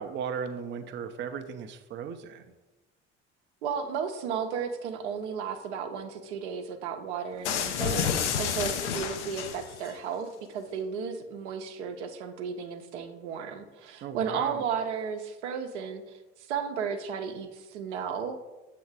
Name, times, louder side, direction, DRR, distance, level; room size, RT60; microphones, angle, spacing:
voice 1, 0.0-2.4 14.0-14.6, right 7 dB, 30° right, 8 dB, 0.5 m, -36 dB
voice 2, 3.6-18.4, right 6 dB, 70° right, 6 dB, 0.7 m, -34 dB
sound 1, 7.4-9.9, left 8 dB, 75° left, 0.6 m, -30 dB
7.0 x 2.9 x 4.7 m, 1.1 s
figure-of-eight pair, 55°, 35 cm